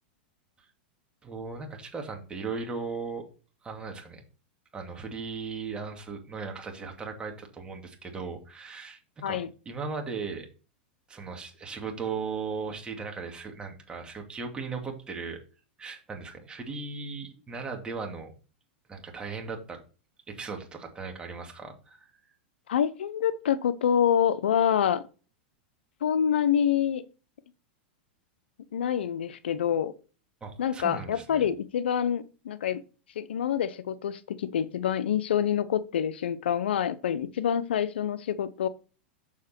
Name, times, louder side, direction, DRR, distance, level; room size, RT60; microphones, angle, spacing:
voice 1, 1.2-3.2 3.6-4.2 4.7-10.5 11.1-15.4 15.8-18.3 18.9-19.8 20.3-22.1 30.4-31.5, right 4 dB, 15° right, 2.4 m, -37 dB
voice 2, 22.7-25.0 26.0-27.0 28.7-29.9 30.6-32.8 33.2-38.7, left 9 dB, 85° left, 0.7 m, -26 dB
7.3 x 6.6 x 4.4 m
hypercardioid pair, 120°, 6 cm